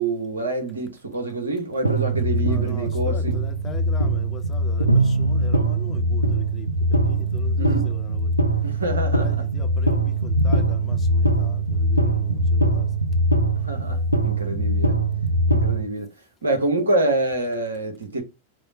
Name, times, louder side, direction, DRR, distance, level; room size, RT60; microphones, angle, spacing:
voice 1, 0.0-3.3 7.6-7.8 8.6-9.3 13.6-15.0 15.5-16.1 16.4-18.2, right 2 dB, 75° right, 0.9 m, -26 dB
sound 1, 1.8-15.8, right 1 dB, 90° right, 0.4 m, -22 dB
voice 2, 2.4-8.4 9.1-12.9 13.9-14.1, left 6 dB, 25° left, 0.8 m, -41 dB
4.8 x 2.1 x 3.7 m
figure-of-eight pair, 90°, 0 cm